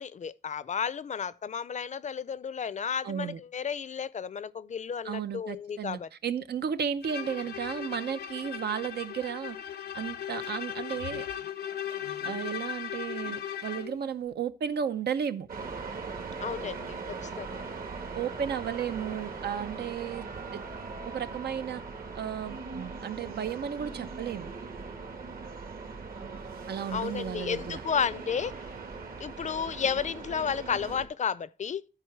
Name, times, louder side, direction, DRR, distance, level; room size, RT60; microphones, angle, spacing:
voice 1, 0.0-6.1 16.4-17.6 26.9-28.5 29.2-31.8, left 7 dB, 50° left, 0.4 m, -32 dB
voice 2, 3.0-3.4 5.0-9.6 9.9-11.2 12.2-15.5 18.1-20.3 20.5-20.6 21.0-21.8 22.1-24.5 26.7-27.8, right 8 dB, 90° right, 0.7 m, -34 dB
Bowed string instrument, 7.0-14.0, left 9 dB, 85° left, 0.7 m, -37 dB
sound 1, 15.5-31.1, right 4 dB, 65° right, 1.6 m, -40 dB
12.5 x 5.0 x 4.6 m
wide cardioid pair, 145°, 16 cm